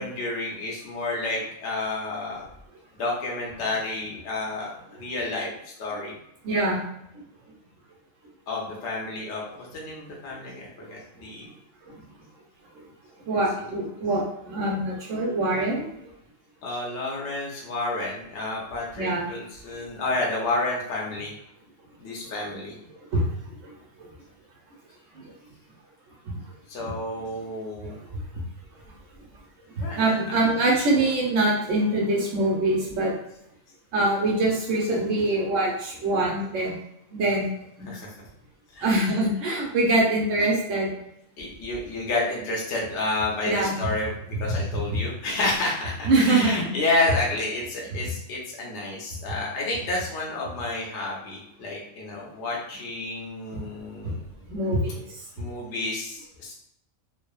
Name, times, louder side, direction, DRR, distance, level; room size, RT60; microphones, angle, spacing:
voice 1, 0.0-2.4 2.9-6.1 8.5-11.4 13.6-13.7 16.6-21.3 22.0-22.8 26.7-28.0 29.8-30.8 37.8-38.1 38.7-39.5 41.4-54.2 55.4-56.5, left 2 dB, 65° left, -3 dB, 0.9 m, -30 dB
voice 2, 6.4-6.8 13.3-15.8 19.0-19.3 23.1-23.2 29.8-33.1 33.9-36.8 37.1-37.5 37.8-37.9 38.8-40.9 43.4-43.8 44.3-44.4 46.0-46.7 54.5-55.0, right 2 dB, 70° right, -2 dB, 1.1 m, -24 dB
3.1 x 2.0 x 2.3 m, 0.75 s
omnidirectional pair, 1.4 m